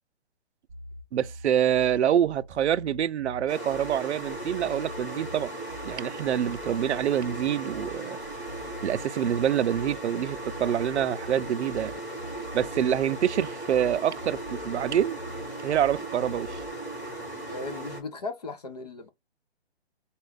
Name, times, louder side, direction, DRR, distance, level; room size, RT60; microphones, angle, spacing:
sound 1, 0.7-16.7, equal, 5° right, 0.7 m, -44 dB
voice 1, 1.1-5.5 5.8-8.2 8.8-11.9 12.5-15.2 15.6-16.6, right 10 dB, 85° right, 0.5 m, -26 dB
sound 2, 3.5-18.0, right 1 dB, 10° left, 1.3 m, -37 dB
voice 2, 17.5-19.1, left 3 dB, 35° left, 0.7 m, -37 dB
4.3 x 2.5 x 3.4 m
hypercardioid pair, 175°, 33 cm